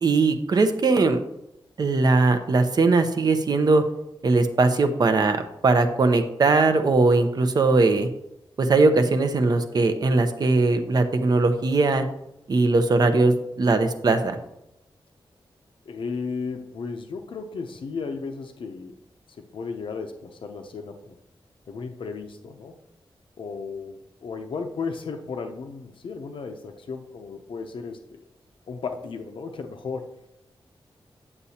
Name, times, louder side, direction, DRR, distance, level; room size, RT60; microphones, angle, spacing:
voice 1, 0.0-1.2 1.8-3.8 4.2-8.1 8.6-12.0 12.5-14.4, right 3 dB, 50° right, 7 dB, 0.7 m, -20 dB
voice 2, 15.9-18.9 19.4-21.2 21.7-22.7 23.4-28.2 28.7-30.1, left 4 dB, 75° left, 5 dB, 0.6 m, -34 dB
9.7 x 6.9 x 2.8 m, 0.86 s
wide cardioid pair, 150°, 9 cm